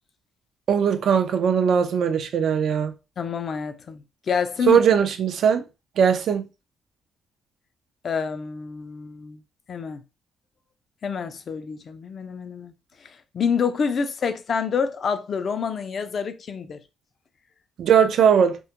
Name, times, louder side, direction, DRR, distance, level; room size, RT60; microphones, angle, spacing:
voice 1, 0.7-2.9 4.7-5.6 6.0-6.4 17.8-18.6, right 7 dB, 65° right, 0.4 m, -19 dB
voice 2, 3.2-4.8 8.0-9.4 9.7-10.0 11.0-12.7 13.3-16.8, left 6 dB, 50° left, 0.3 m, -27 dB
2.2 x 2.0 x 2.8 m
cardioid pair, 90°, 0 cm